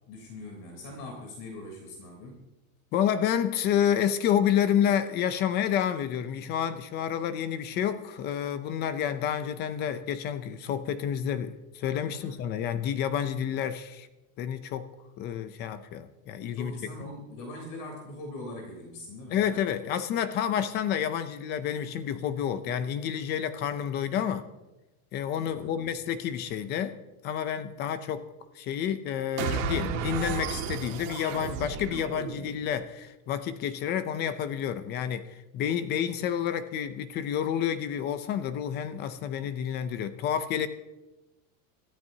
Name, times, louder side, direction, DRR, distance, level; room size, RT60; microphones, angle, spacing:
voice 1, 0.1-2.4 12.1-12.3 16.5-19.6 25.5-25.9, left 1 dB, 50° left, 3.5 m, -42 dB
voice 2, 2.9-14.1 14.4-14.9 15.2-16.7 19.3-24.5 25.1-27.0 27.2-28.3 28.6-40.7, left 9 dB, 25° left, 0.5 m, -29 dB
sound 1, 29.4-32.7, right 6 dB, 60° right, 2.0 m, -33 dB
25.5 x 13.5 x 2.7 m
supercardioid pair, 165°, 45 cm